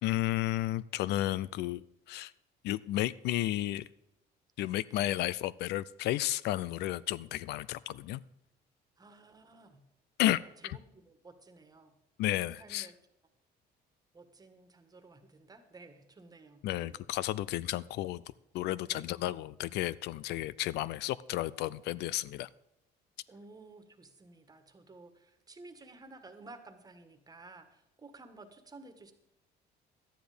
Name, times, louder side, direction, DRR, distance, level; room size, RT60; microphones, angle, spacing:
voice 1, 0.0-2.3 2.6-3.8 4.6-8.2 10.2-10.8 12.2-12.9 16.6-18.2 18.5-22.5, left 15 dB, 80° left, 20 dB, 0.4 m, -32 dB
voice 2, 9.0-9.8 10.3-12.0 12.4-13.0 14.1-17.0 18.9-19.1 23.3-29.1, right 3 dB, 20° right, 7 dB, 1.6 m, -54 dB
12.5 x 10.0 x 5.0 m, 0.88 s
cardioid pair, 110°, 17 cm